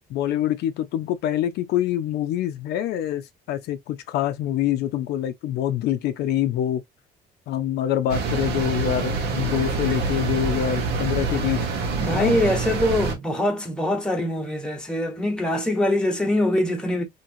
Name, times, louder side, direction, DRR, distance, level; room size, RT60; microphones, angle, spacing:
voice 1, 0.1-6.8 7.5-11.7 12.1-12.4, left 11 dB, 75° left, 0.5 m, -25 dB
sound 1, 8.1-13.1, right 4 dB, 80° right, 1.1 m, -26 dB
voice 2, 12.0-17.0, left 1 dB, 5° left, 1.1 m, -23 dB
2.9 x 2.8 x 2.6 m
cardioid pair, 110°, 17 cm